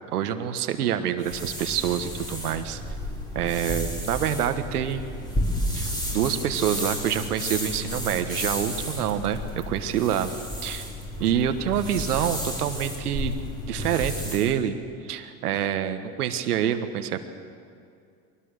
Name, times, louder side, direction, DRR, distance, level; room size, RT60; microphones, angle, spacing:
voice 1, 0.1-2.8 3.3-5.3 5.7-10.3 10.6-10.9 11.2-13.4 13.7-14.8 15.0-17.2, right 10 dB, 90° right, 9 dB, 1.5 m, -27 dB
sound 1, 1.2-14.5, equal, 10° left, 4.1 m, -32 dB
23.0 x 18.5 x 6.6 m, 2.3 s
supercardioid pair, 110°, 44 cm